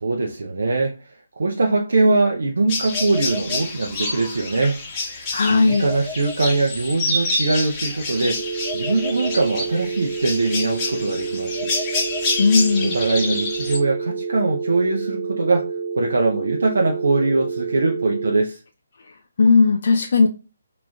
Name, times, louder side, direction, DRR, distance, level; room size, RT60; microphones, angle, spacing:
voice 1, 0.0-5.2 5.5-11.7 12.8-15.7 16.0-18.6, right 3 dB, 60° right, 0.6 m, -22 dB
sound 1, 2.7-13.8, left 2 dB, 20° left, 1.0 m, -28 dB
voice 2, 5.3-5.9 12.4-12.9 19.4-20.3, left 4 dB, 50° left, 0.4 m, -16 dB
sound 2, 8.4-18.4, right 5 dB, 10° right, 0.5 m, -29 dB
4.8 x 2.9 x 2.4 m
figure-of-eight pair, 140°, 0 cm